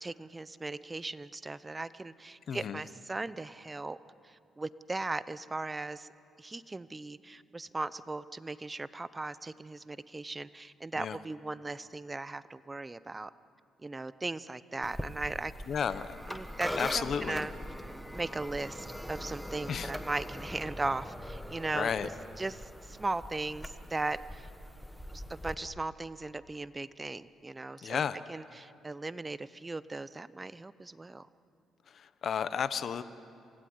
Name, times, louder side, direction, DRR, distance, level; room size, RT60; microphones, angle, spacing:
voice 1, 0.0-4.0 4.2-6.1 6.4-13.3 13.8-15.5 16.3-17.5 18.1-22.1 22.4-24.5 25.1-28.0 28.3-31.3, right 2 dB, 20° right, 16 dB, 0.8 m, -38 dB
voice 2, 2.5-2.8 11.0-11.2 15.7-16.1 16.8-17.5 19.7-19.9 21.7-22.1 27.8-28.2 31.9-33.0, left 7 dB, 55° left, 14 dB, 0.9 m, -33 dB
sound 1, 14.8-25.5, equal, ahead, 1.4 m, -42 dB
26.5 x 16.5 x 9.5 m, 2.5 s
cardioid pair, 90°, 0 cm